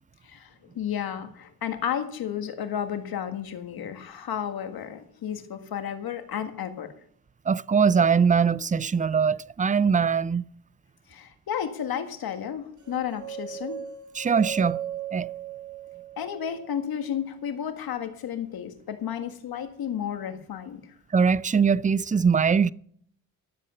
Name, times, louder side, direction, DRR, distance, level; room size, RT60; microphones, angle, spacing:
voice 1, 0.2-6.9 11.1-13.8 16.2-20.8, left 9 dB, 75° left, 1.7 m, -32 dB
voice 2, 7.5-10.5 14.1-14.8 15.1-15.3 21.1-22.7, right 6 dB, 20° right, 0.4 m, -22 dB
sound 1, 12.9-17.0, right 10 dB, 50° right, 1.6 m, -37 dB
13.0 x 7.8 x 6.6 m
cardioid pair, 70°, 37 cm